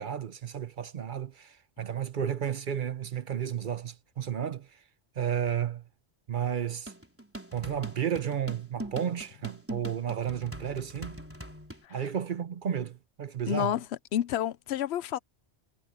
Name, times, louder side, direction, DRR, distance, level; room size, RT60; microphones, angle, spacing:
voice 1, 0.0-4.8 5.2-5.8 6.3-6.9 7.5-11.2 11.9-13.7, right 9 dB, 55° right, 0.8 m, -32 dB
sound 1, 6.9-11.8, right 1 dB, 10° right, 4.2 m, -42 dB
voice 2, 13.5-13.8 14.1-15.2, left 10 dB, 75° left, 0.8 m, -29 dB
omnidirectional pair, 1.1 m